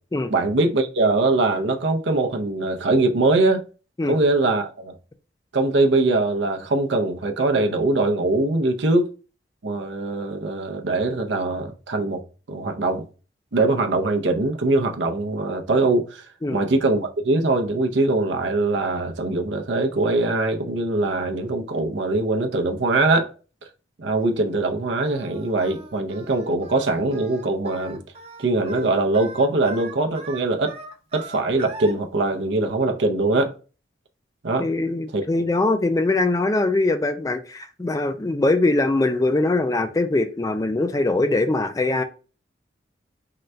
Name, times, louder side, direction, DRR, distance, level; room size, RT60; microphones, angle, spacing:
voice 1, 0.3-3.6 4.1-4.9 5.5-9.1 9.6-12.2 12.5-13.1 13.5-16.3 16.5-23.3 24.0-28.0 28.4-30.8 31.1-33.5 34.4-34.7 35.1-35.2, right 2 dB, 80° right, 0.6 m, -22 dB
Singing, 25.0-31.9, right 3 dB, 35° right, 0.6 m, -41 dB
voice 2, 34.6-42.0, left 2 dB, 20° left, 0.3 m, -22 dB
3.8 x 2.2 x 4.4 m
head